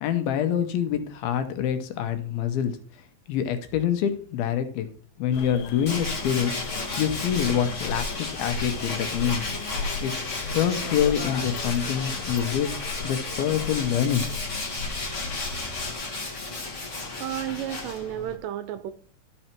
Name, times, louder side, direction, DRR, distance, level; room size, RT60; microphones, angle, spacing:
voice 1, 0.0-2.7 3.3-4.9 5.2-6.5 7.0-9.6 10.0-10.1 10.5-12.7 13.0-14.2, left 9 dB, 85° left, 8 dB, 2.9 m, -26 dB
sound 1, 5.3-15.9, left 4 dB, 70° left, 1.9 m, -36 dB
Tools, 5.9-18.4, left 3 dB, 45° left, 1.0 m, -33 dB
voice 2, 17.2-18.9, right 12 dB, 80° right, 12 dB, 2.0 m, -32 dB
12.0 x 5.5 x 4.5 m, 0.44 s
omnidirectional pair, 4.2 m